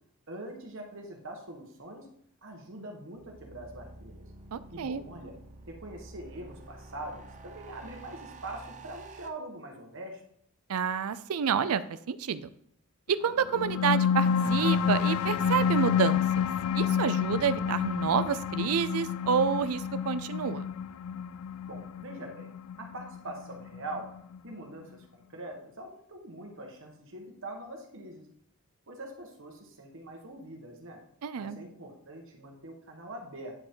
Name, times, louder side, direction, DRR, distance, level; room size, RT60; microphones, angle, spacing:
voice 1, 0.3-2.1 2.4-4.2 4.7-5.3 5.7-10.2 21.6-22.5 22.8-24.1 24.4-28.3 28.9-31.0 31.3-33.5, right 1 dB, 60° right, 2 dB, 1.6 m, -43 dB
sound 1, 3.1-9.3, right 2 dB, 35° right, 0.7 m, -49 dB
voice 2, 4.5-5.0 10.7-11.8 12.1-12.5 13.1-16.5 16.7-20.6 31.2-31.6, right 7 dB, 75° right, 14 dB, 0.4 m, -29 dB
sound 2, 13.4-24.4, left 7 dB, 75° left, 0.3 m, -29 dB
9.6 x 5.0 x 3.8 m, 0.67 s
head